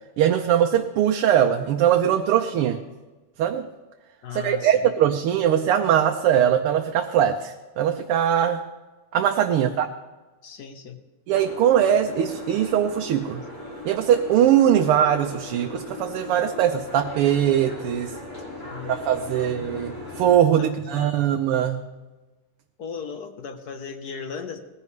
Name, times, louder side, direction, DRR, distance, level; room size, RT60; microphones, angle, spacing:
voice 1, 0.2-2.8 3.4-3.6 4.3-8.6 9.1-9.9 11.3-13.4 13.8-18.1 18.9-21.8, right 10 dB, 90° right, 4 dB, 1.7 m, -21 dB
voice 2, 4.2-4.8 9.5-9.8 10.4-11.0 18.6-19.0 19.3-19.7 20.6-21.1 22.8-24.6, left 6 dB, 55° left, 7 dB, 1.4 m, -37 dB
Boat Water vehicle, 11.3-20.4, left 1 dB, 35° left, 3.4 m, -38 dB
19.5 x 15.5 x 3.2 m, 1.2 s
omnidirectional pair, 2.4 m